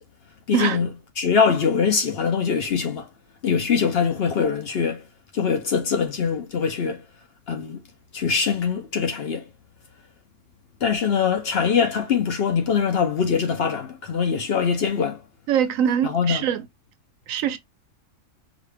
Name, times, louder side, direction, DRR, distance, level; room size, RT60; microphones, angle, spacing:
voice 1, 0.5-0.9 1.2-3.1 3.4-5.0 5.3-7.0 7.5-7.8 8.1-9.4 10.8-15.2 16.0-16.4, left 6 dB, 55° left, 0.8 m, -23 dB
voice 2, 15.5-16.7 17.3-17.6, right 9 dB, 75° right, 1.0 m, -23 dB
5.0 x 2.4 x 3.3 m
omnidirectional pair, 1.4 m